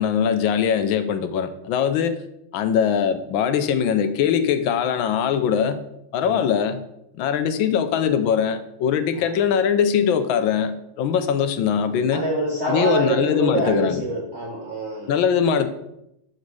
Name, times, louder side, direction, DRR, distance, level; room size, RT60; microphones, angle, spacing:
voice 1, 0.0-2.2 2.5-5.8 6.1-6.8 7.2-12.2 12.6-14.0 15.1-15.7, left 8 dB, 75° left, 10 dB, 1.3 m, -21 dB
voice 2, 12.1-15.1, right 2 dB, 35° right, -3 dB, 1.4 m, -25 dB
6.6 x 6.2 x 4.7 m, 0.81 s
omnidirectional pair, 2.4 m